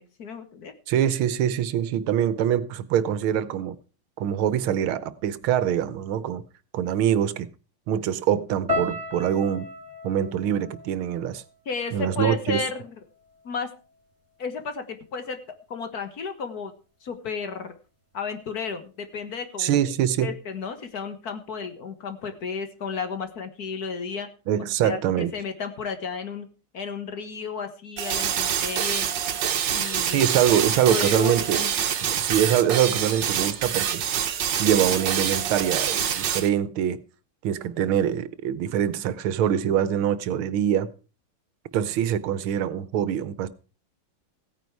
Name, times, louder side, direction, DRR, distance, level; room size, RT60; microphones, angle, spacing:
voice 1, 0.0-0.7 7.9-8.0 11.7-12.9 13.4-13.7 14.4-15.4 15.7-16.7 17.0-17.7 18.1-19.8 20.2-24.3 24.8-26.5 26.7-29.1 29.7-30.3 30.9-31.7, left 5 dB, 50° left, 1.7 m, -33 dB
voice 2, 0.9-3.8 4.2-6.4 6.7-7.5 7.9-9.7 10.0-11.4 11.9-12.6 19.6-20.3 24.5-25.3 30.0-31.6 32.0-34.0 34.6-37.0 37.4-40.9 41.7-43.5, right 10 dB, 90° right, 1.7 m, -24 dB
sound 1, 8.7-12.9 13.1-13.9 14.5-14.7, left 1 dB, 35° right, 3.1 m, -35 dB
sound 2, 28.0-36.5, right 8 dB, 65° right, 1.7 m, -26 dB
15.5 x 9.4 x 4.7 m
omnidirectional pair, 2.2 m